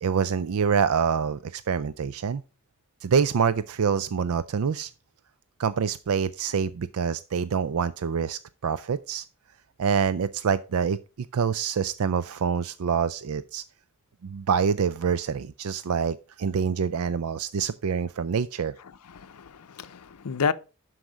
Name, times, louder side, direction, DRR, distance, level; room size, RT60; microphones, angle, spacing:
voice 1, 0.0-2.4 3.0-4.9 5.6-9.3 9.8-11.0 11.3-13.6 14.2-18.7, right 6 dB, 65° right, 0.4 m, -26 dB
voice 2, 18.8-20.5, left 6 dB, 85° left, 0.6 m, -30 dB
11.5 x 4.8 x 4.9 m
head